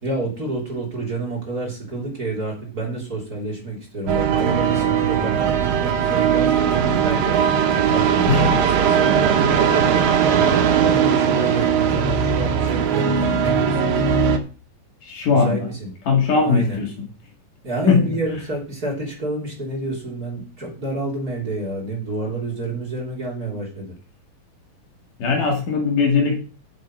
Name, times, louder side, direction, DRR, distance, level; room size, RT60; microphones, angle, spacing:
voice 1, 0.0-7.4 7.7-14.0 15.4-15.9 16.4-16.8 17.6-23.9, right 2 dB, 25° right, 0 dB, 3.6 m, -28 dB
sound 1, 4.1-14.4, right 7 dB, 80° right, 3.0 m, -19 dB
voice 2, 15.0-15.7 16.1-16.9 17.9-18.1 25.2-26.4, left 5 dB, 65° left, 2 dB, 3.7 m, -19 dB
7.8 x 7.8 x 6.2 m, 0.37 s
omnidirectional pair, 3.9 m